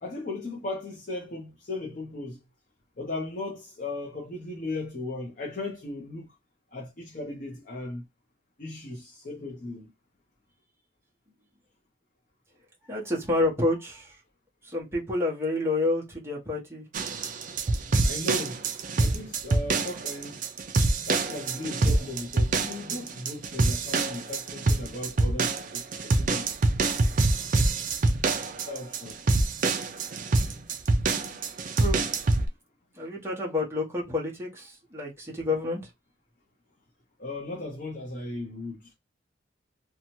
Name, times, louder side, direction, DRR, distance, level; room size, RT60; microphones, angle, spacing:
voice 1, 0.0-2.4 3.0-6.3 6.7-8.0 8.6-9.9 18.0-18.6 19.0-20.4 21.1-26.5 28.7-29.3 30.2-30.3 37.2-38.9, left 2 dB, 45° left, 0.7 m, -36 dB
voice 2, 12.9-14.2 14.6-16.9 31.7-32.0 32.9-35.9, left 2 dB, 15° right, 0.9 m, -29 dB
sound 1, 16.9-32.5, right 3 dB, 40° right, 0.4 m, -26 dB
2.7 x 2.3 x 2.9 m
head